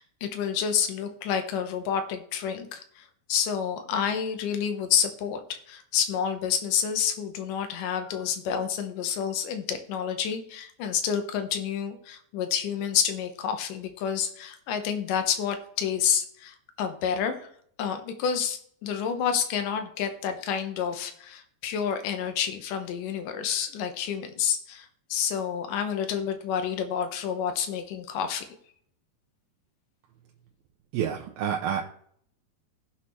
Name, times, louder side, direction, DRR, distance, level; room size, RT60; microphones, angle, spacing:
voice 1, 0.0-17.5 17.8-28.4, left 8 dB, 70° left, 7 dB, 2.5 m, -29 dB
voice 2, 30.9-31.9, right 8 dB, 80° right, 1 dB, 2.7 m, -28 dB
17.5 x 5.9 x 3.2 m, 0.63 s
omnidirectional pair, 4.2 m